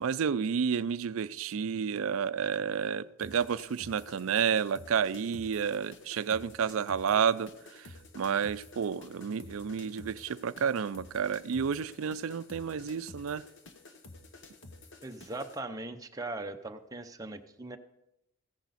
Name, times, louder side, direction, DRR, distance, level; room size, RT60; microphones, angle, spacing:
voice 1, 0.0-13.4, right 7 dB, 70° right, 16 dB, 0.4 m, -30 dB
sound 1, 3.2-15.6, left 2 dB, 55° left, 1.1 m, -51 dB
voice 2, 15.0-17.8, right 2 dB, 15° right, 5 dB, 0.6 m, -39 dB
14.5 x 10.5 x 4.1 m, 0.85 s
head